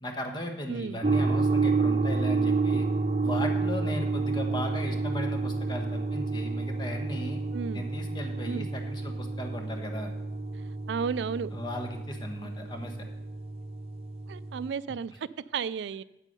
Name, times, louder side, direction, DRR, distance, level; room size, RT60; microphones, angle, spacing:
voice 1, 0.0-2.9 3.2-7.4 7.7-10.1 11.5-13.0, left 1 dB, 25° left, 3 dB, 1.2 m, -37 dB
voice 2, 0.7-1.0 7.5-7.9 8.5-8.7 10.9-11.5 12.4-12.5 14.3-16.0, right 6 dB, 70° right, 18 dB, 0.3 m, -33 dB
sound 1, 1.0-14.7, right 3 dB, 35° right, 0.6 m, -30 dB
8.4 x 8.3 x 5.3 m, 0.87 s
head